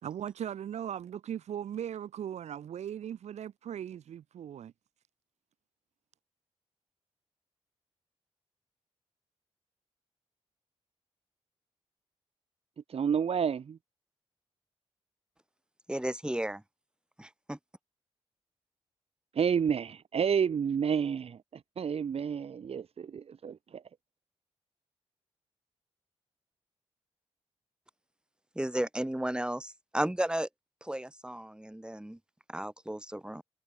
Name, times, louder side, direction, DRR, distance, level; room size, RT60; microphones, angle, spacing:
voice 1, 0.0-4.7, right 9 dB, 80° right, 2.0 m, -38 dB
voice 2, 12.9-13.8 19.3-21.4 21.8-23.8, right 7 dB, 60° right, 1.6 m, -30 dB
voice 3, 15.9-16.6 17.2-17.6 28.5-30.5 30.8-32.2 32.5-33.4, right 1 dB, 10° right, 5.5 m, -34 dB
cardioid pair, 65°, 11 cm